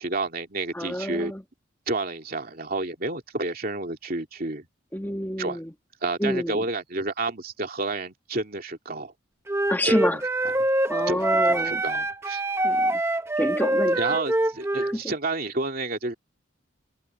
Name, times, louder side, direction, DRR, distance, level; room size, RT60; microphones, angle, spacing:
voice 1, 0.0-1.3 1.9-4.7 5.4-5.6 6.0-9.1 9.8-10.1 11.1-12.4 14.0-16.1, right 2 dB, 45° right, 2.8 m, -30 dB
voice 2, 0.7-1.4 4.9-5.7 6.2-6.6 9.7-10.2 10.9-11.8 12.6-13.0 13.4-14.0 14.8-15.1, left 1 dB, 10° left, 1.5 m, -28 dB
Wind instrument woodwind instrument, 9.5-15.0, right 1 dB, 15° right, 0.7 m, -24 dB
head